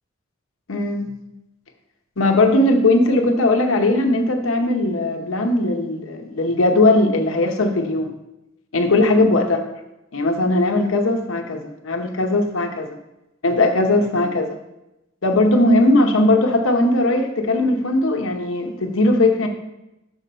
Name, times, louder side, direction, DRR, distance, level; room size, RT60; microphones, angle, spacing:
voice 1, 0.7-1.1 2.2-8.1 8.7-9.6 10.1-12.9 13.4-14.6 15.2-19.5, left 2 dB, 85° left, 5 dB, 0.8 m, -18 dB
6.4 x 5.4 x 4.2 m, 0.92 s
head